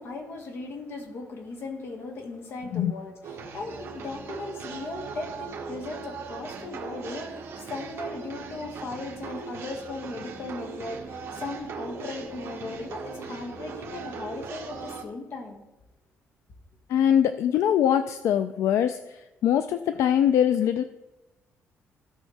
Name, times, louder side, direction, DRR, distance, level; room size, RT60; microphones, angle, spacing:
voice 1, 0.0-15.6, left 3 dB, 50° left, 2 dB, 1.7 m, -37 dB
sound 1, 3.2-15.0, right 4 dB, 55° right, 1.4 m, -39 dB
voice 2, 16.9-20.8, left 9 dB, 75° left, 10 dB, 0.4 m, -23 dB
15.5 x 5.5 x 3.3 m, 1.0 s
cardioid pair, 150°, 5 cm